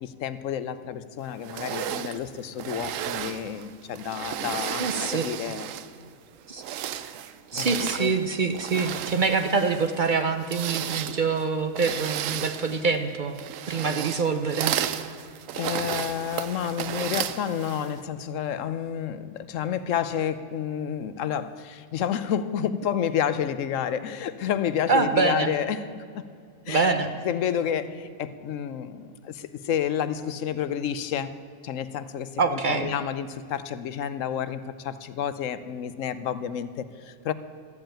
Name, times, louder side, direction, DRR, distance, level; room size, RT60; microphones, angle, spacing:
voice 1, 0.0-5.7 7.5-7.7 8.0-8.1 15.5-26.2 26.7-26.9 27.2-31.3 31.6-37.3, left 9 dB, 80° left, 13 dB, 1.0 m, -30 dB
sound 1, 1.4-6.0 6.5-18.0, right 10 dB, 85° right, 1.0 m, -33 dB
voice 2, 4.8-5.3 6.5-6.6 7.5-13.4 13.7-14.7 24.9-25.5 26.7-27.1 32.4-32.9, right 4 dB, 45° right, 7 dB, 0.8 m, -25 dB
13.5 x 7.8 x 8.9 m, 2.3 s
omnidirectional pair, 1.3 m